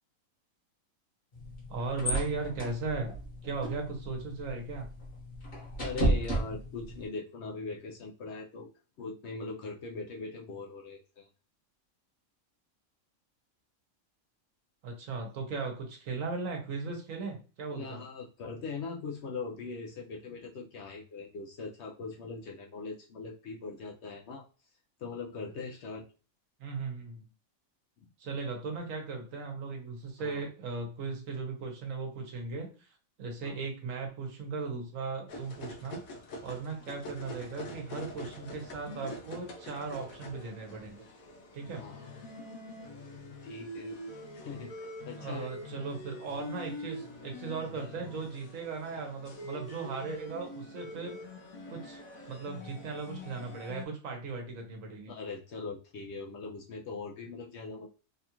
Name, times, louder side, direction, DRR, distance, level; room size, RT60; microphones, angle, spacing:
sound 1, 1.3-7.1, right 1 dB, 45° left, 1.3 m, -34 dB
voice 1, 1.7-3.2 3.4-4.9 14.8-18.0 26.6-27.2 28.2-32.9 33.2-41.1 41.5-41.8 45.2-51.2 51.7-55.1, right 4 dB, 70° right, 2 dB, 1.2 m, -37 dB
voice 2, 5.8-8.7 9.0-11.3 17.7-24.4 25.0-26.0 30.2-30.5 33.4-33.6 41.7-42.1 43.4-44.0 44.3-45.5 47.7-47.9 55.1-57.9, left 4 dB, 65° left, 0 dB, 0.7 m, -41 dB
sound 2, 35.3-53.9, left 1 dB, 85° left, 1.1 m, -45 dB
3.4 x 2.4 x 2.8 m, 0.35 s
omnidirectional pair, 1.4 m